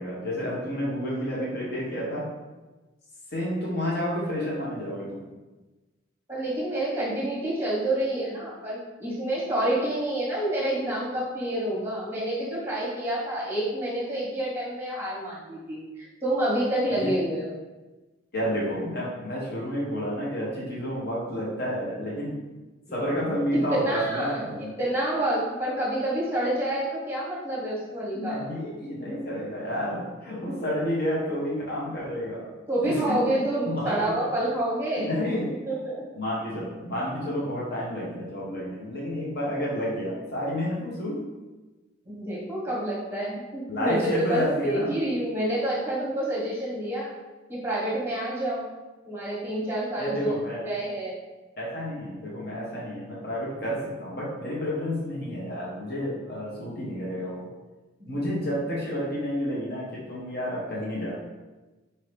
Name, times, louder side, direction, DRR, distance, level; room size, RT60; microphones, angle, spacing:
voice 1, 0.0-2.3 3.3-5.2 17.0-17.1 18.3-22.4 22.9-24.8 28.1-32.4 32.8-33.4 33.7-34.1 34.9-35.5 36.2-41.2 43.7-44.9 50.0-50.7 51.6-57.5 58.1-61.1, equal, 50° left, -5 dB, 1.0 m, -30 dB
voice 2, 6.3-17.5 23.7-24.4 24.8-28.4 32.7-35.1 35.7-36.0 42.0-47.1 47.5-48.6 49.0-50.4 50.6-51.1, right 1 dB, 10° right, -7 dB, 1.1 m, -28 dB
4.3 x 2.8 x 3.3 m, 1.2 s
head